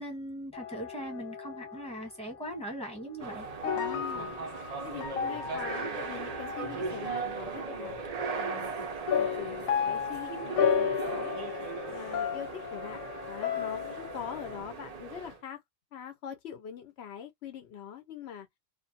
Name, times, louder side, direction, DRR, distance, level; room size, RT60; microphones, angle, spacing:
voice 1, 0.0-3.5, equal, 5° left, 1.0 m, -39 dB
sound 1, 0.5-2.6 2.9-7.8 9.1-14.6, left 7 dB, 90° left, 1.1 m, -33 dB
sound 2, 3.2-15.4, right 4 dB, 60° right, 0.4 m, -38 dB
voice 2, 3.7-4.3 4.8-7.9 8.3-11.3 11.9-15.6 15.9-18.5, left 8 dB, 65° left, 0.7 m, -43 dB
2.4 x 2.2 x 2.6 m
omnidirectional pair, 1.4 m